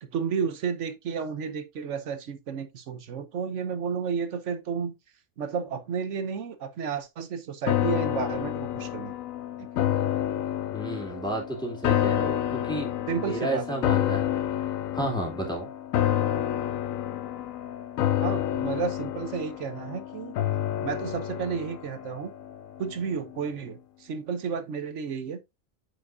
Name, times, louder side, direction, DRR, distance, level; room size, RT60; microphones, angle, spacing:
voice 1, 0.0-4.9 5.4-9.1 9.6-10.0 13.1-13.8 16.1-16.2 18.2-20.4 20.8-22.3 22.8-25.4, right 6 dB, 65° right, 1.1 m, -32 dB
sound 1, 7.7-23.0 23.3-23.4, left 11 dB, 80° left, 1.1 m, -29 dB
voice 2, 10.7-12.9 13.2-14.2 14.9-15.7, right 1 dB, 5° left, 2.5 m, -32 dB
7.4 x 6.1 x 2.5 m
omnidirectional pair, 1.4 m